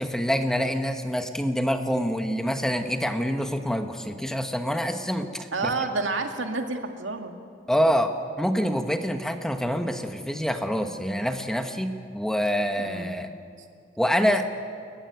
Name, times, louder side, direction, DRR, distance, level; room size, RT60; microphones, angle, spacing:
voice 1, 0.0-5.7 7.7-13.3 14.0-14.5, equal, 5° left, 6 dB, 1.1 m, -26 dB
voice 2, 5.5-7.3 12.8-13.2, right 3 dB, 80° right, 4 dB, 2.2 m, -29 dB
30.0 x 14.5 x 9.3 m, 2.3 s
head